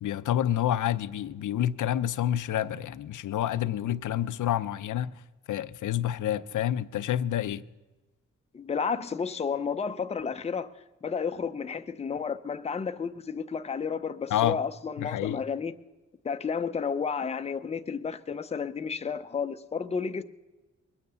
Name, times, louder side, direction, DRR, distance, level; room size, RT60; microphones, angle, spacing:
voice 1, 0.0-5.1 5.5-7.6 14.3-14.6 15.0-15.4, left 11 dB, 90° left, 0.5 m, -28 dB
voice 2, 8.5-10.7 11.0-15.7 16.2-20.2, left 6 dB, 20° left, 0.5 m, -32 dB
21.5 x 9.5 x 6.8 m
wide cardioid pair, 155°, 30 cm